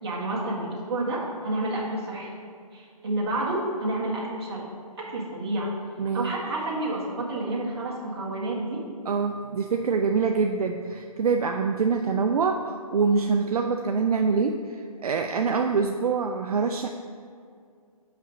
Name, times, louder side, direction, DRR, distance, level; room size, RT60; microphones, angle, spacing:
voice 1, 0.0-2.3 2.7-4.7 5.0-5.7 6.1-8.8, right 2 dB, 45° right, -4 dB, 1.7 m, -29 dB
voice 2, 6.0-6.3 9.1-16.9, right 5 dB, 70° right, 4 dB, 0.5 m, -25 dB
5.5 x 5.0 x 5.9 m, 2.2 s
hypercardioid pair, 165°, 20 cm